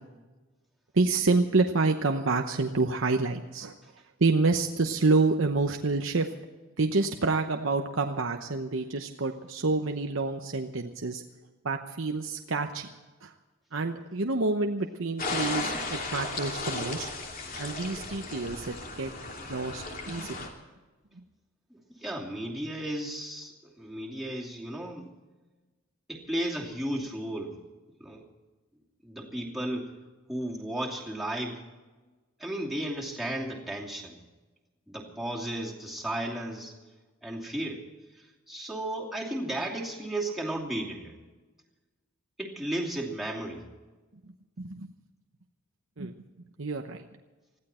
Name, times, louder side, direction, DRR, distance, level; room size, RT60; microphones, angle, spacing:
voice 1, 0.9-3.8 4.2-6.3 6.8-11.2 11.6-12.9 13.2-13.3 13.7-17.1 17.6-19.1 19.5-20.5 21.2-21.3 44.6-44.9 46.0-46.1 46.6-47.1, right 3 dB, 65° right, 5 dB, 0.9 m, -28 dB
sound 1, 15.2-20.5, left 3 dB, 45° left, 2.7 m, -35 dB
voice 2, 21.7-25.1 26.1-27.6 28.0-28.3 29.0-29.9 30.3-31.6 32.4-34.2 34.9-36.8 37.2-37.8 38.1-41.1 42.4-43.6, right 1 dB, ahead, -3 dB, 2.7 m, -34 dB
20.5 x 15.0 x 4.4 m, 1.2 s
head